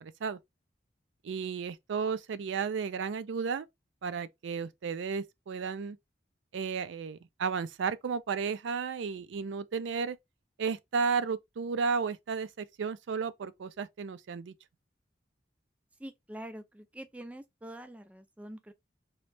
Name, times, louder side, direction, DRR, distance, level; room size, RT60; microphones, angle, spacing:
voice 1, 0.0-0.4 1.2-3.7 4.0-6.0 6.5-10.2 10.6-14.5, right 5 dB, 90° right, 0.4 m, -33 dB
voice 2, 16.0-18.7, right 1 dB, 10° right, 0.3 m, -45 dB
3.1 x 2.6 x 3.2 m
head